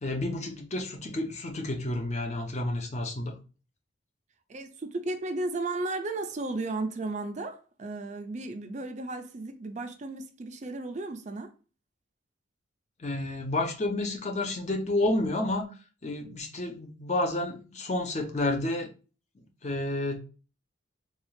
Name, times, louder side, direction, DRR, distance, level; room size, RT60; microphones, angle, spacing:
voice 1, 0.0-3.3 13.0-15.7 16.0-18.9 19.6-20.2, left 2 dB, 35° left, 0.6 m, -30 dB
voice 2, 4.5-11.5, right 2 dB, 35° right, 0.4 m, -34 dB
4.0 x 2.3 x 3.1 m
head